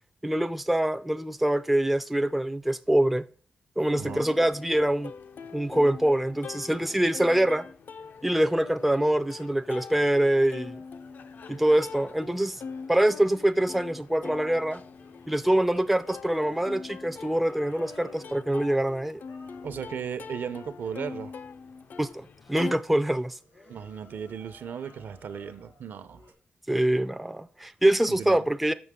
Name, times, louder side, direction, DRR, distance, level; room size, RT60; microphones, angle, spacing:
voice 1, 0.2-3.2 3.8-5.1 5.5-7.7 8.2-10.8 11.5-12.6 12.9-14.8 15.3-19.2 22.0-23.4 26.7-28.7, right 1 dB, 5° right, 0.3 m, -24 dB
Plucked string instrument, 3.8-22.7, left 5 dB, 60° left, 0.5 m, -43 dB
voice 2, 3.9-4.3 19.6-21.3 23.7-26.3 28.1-28.4, right 7 dB, 75° right, 0.7 m, -36 dB
sound 1, 8.3-26.3, left 1 dB, 85° left, 4.1 m, -58 dB
7.0 x 6.1 x 3.6 m
wide cardioid pair, 155°, 4 cm